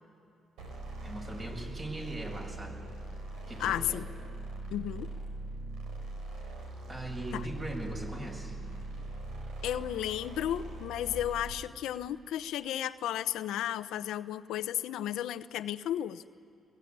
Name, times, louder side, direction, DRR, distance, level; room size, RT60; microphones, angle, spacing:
sound 1, 0.6-11.6, right 2 dB, 85° right, 4.8 m, -41 dB
voice 1, 1.0-2.8 3.5-4.0 6.9-8.5, right 1 dB, 30° right, 1 dB, 6.7 m, -40 dB
voice 2, 3.6-4.1 4.7-5.1 7.3-7.5 9.6-16.2, left 11 dB, 85° left, 12 dB, 0.7 m, -33 dB
22.5 x 21.5 x 9.5 m, 2.4 s
cardioid pair, 90°, 0 cm